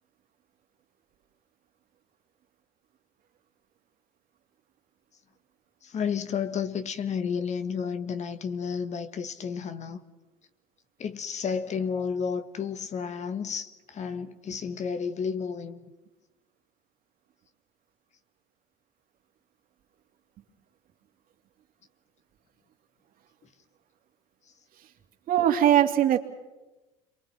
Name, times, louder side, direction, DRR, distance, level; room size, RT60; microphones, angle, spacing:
voice 1, 5.8-10.0 11.0-15.8, left 6 dB, 40° left, 1.7 m, -31 dB
voice 2, 25.3-26.2, right 11 dB, 55° right, 2.8 m, -20 dB
28.0 x 23.0 x 5.9 m
hypercardioid pair, 80°, 18 cm